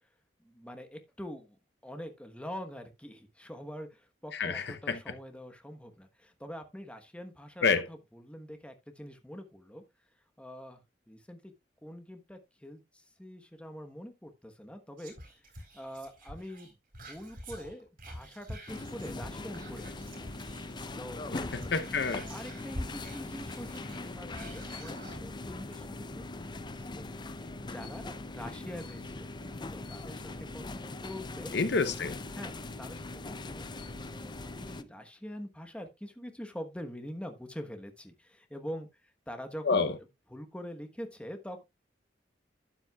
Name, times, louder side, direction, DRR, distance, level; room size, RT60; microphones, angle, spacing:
voice 1, 0.4-9.8 10.4-10.8 11.1-11.5 11.8-15.1 15.7-20.3 21.0-21.2 22.3-27.1 27.6-29.3 29.7-31.5 32.3-39.9 40.3-41.6, equal, 5° left, 1.1 m, -45 dB
voice 2, 4.3-5.1 7.6-7.9 21.3-22.3 31.5-32.2 39.6-40.0, left 4 dB, 65° left, 0.8 m, -29 dB
Whispering, 15.0-21.0 21.3-25.2 25.7-25.8, equal, 50° right, 3.9 m, -46 dB
sound 1, 18.7-34.8, left 2 dB, 25° left, 0.5 m, -41 dB
12.0 x 8.9 x 2.3 m
head